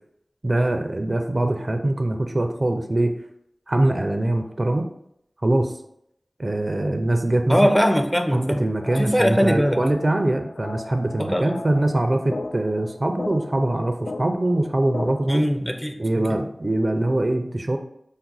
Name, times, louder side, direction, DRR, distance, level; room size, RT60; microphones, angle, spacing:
voice 1, 0.4-3.1 3.7-4.9 5.4-5.7 6.4-7.6 8.3-15.5 16.0-17.8, right 1 dB, 45° right, 6 dB, 0.4 m, -23 dB
voice 2, 7.5-9.8 11.2-11.6 15.3-16.4, equal, 10° left, 6 dB, 0.6 m, -22 dB
sound 1, 8.4-15.4, left 2 dB, 70° left, 0.3 m, -37 dB
5.8 x 2.1 x 3.9 m, 0.76 s
wide cardioid pair, 45°, 0 cm